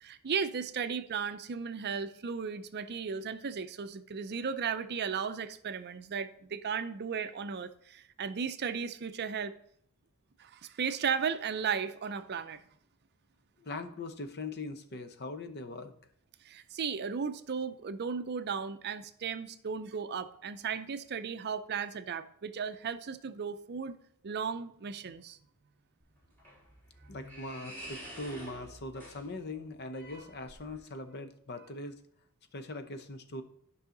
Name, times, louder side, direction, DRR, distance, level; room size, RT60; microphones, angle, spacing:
voice 1, 0.0-9.5 10.4-12.6 16.4-24.0 24.2-25.4, right 6 dB, 50° right, 0.5 m, -35 dB
voice 2, 13.6-15.9 27.1-32.0 32.5-33.4, left 2 dB, 50° left, 0.8 m, -41 dB
sound 1, 26.0-31.0, equal, 10° left, 3.6 m, -49 dB
11.0 x 5.6 x 3.8 m
head